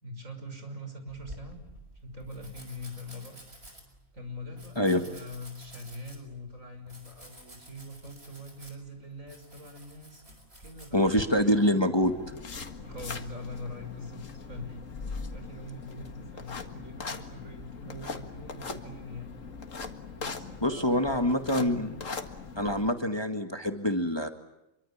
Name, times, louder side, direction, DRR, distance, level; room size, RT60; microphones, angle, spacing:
voice 1, 0.0-1.6 2.0-3.4 4.1-11.5 12.8-14.8 15.1-19.4 20.2-21.9, left 1 dB, 70° right, 6 dB, 6.4 m, -43 dB
Domestic sounds home sounds, 1.1-11.2, right 1 dB, 50° right, 6.7 m, -49 dB
voice 2, 10.9-12.1 20.6-21.9 22.6-24.3, left 1 dB, 20° left, 6 dB, 1.9 m, -25 dB
sound 1, 12.0-22.9, left 4 dB, 70° left, 2.3 m, -40 dB
27.5 x 24.0 x 8.8 m, 0.89 s
omnidirectional pair, 1.4 m